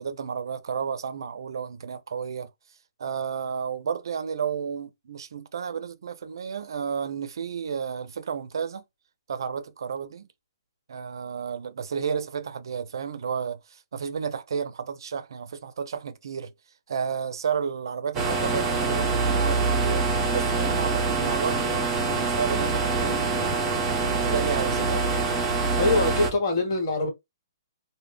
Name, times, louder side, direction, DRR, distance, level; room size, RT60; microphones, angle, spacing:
voice 1, 0.0-2.5 3.0-8.8 9.3-10.3 10.9-16.5 16.9-20.1 20.3-25.4, right 7 dB, 70° right, 0.4 m, -32 dB
sound 1, 18.1-26.3, right 4 dB, 20° right, 0.6 m, -25 dB
voice 2, 25.8-27.1, left 2 dB, 50° left, 1.0 m, -23 dB
2.1 x 2.0 x 3.2 m
hypercardioid pair, 150°, 2 cm